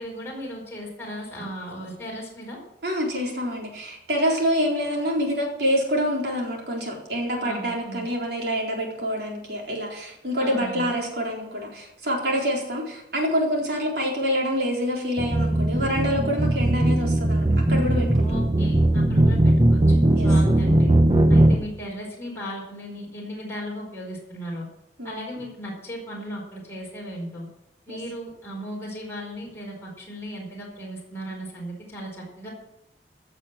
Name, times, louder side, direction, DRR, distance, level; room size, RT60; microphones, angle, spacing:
voice 1, 0.0-2.6 7.4-8.0 10.4-10.9 18.2-20.9 21.3-24.7 25.0-27.5 27.9-32.5, equal, 15° left, -4 dB, 4.8 m, -36 dB
voice 2, 2.8-18.4 20.1-20.3 21.3-21.6 25.0-25.3 27.9-28.0, equal, 65° right, -1 dB, 4.1 m, -26 dB
sound 1, 15.2-21.6, right 1 dB, 25° right, 0.9 m, -19 dB
15.5 x 6.8 x 7.7 m, 0.87 s
head